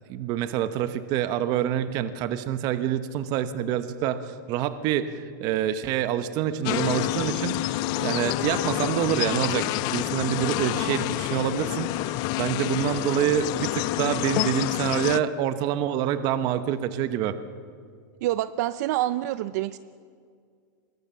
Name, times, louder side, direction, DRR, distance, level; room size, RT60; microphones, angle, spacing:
voice 1, 0.1-17.4, right 10 dB, 40° right, 11 dB, 1.1 m, -27 dB
sound 1, 6.6-15.2, left 17 dB, 40° left, 0.5 m, -28 dB
voice 2, 18.2-19.8, right 14 dB, 55° right, 14 dB, 0.6 m, -27 dB
24.0 x 21.5 x 6.9 m, 2.1 s
supercardioid pair, 150°, 10 cm